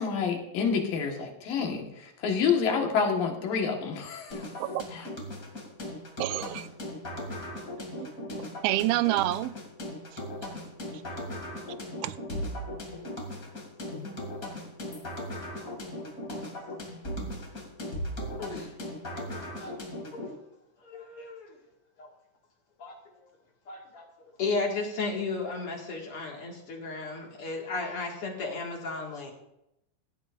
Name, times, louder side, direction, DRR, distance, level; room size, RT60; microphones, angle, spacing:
voice 1, 0.0-4.4 4.9-5.1, left 6 dB, 70° left, 2 dB, 3.2 m, -28 dB
sound 1, 4.3-20.3, left 1 dB, 25° left, 2.5 m, -38 dB
voice 2, 6.2-6.7 8.0-8.1 8.6-9.5 12.0-12.2, right 16 dB, 85° right, 14 dB, 2.4 m, -27 dB
voice 3, 18.4-18.7 19.1-19.7 20.1-20.4 20.8-21.6 22.0-22.1 22.8-23.2 23.7-24.1 24.4-29.3, left 3 dB, 45° left, -1 dB, 2.5 m, -34 dB
17.0 x 12.5 x 2.6 m, 0.83 s
omnidirectional pair, 4.2 m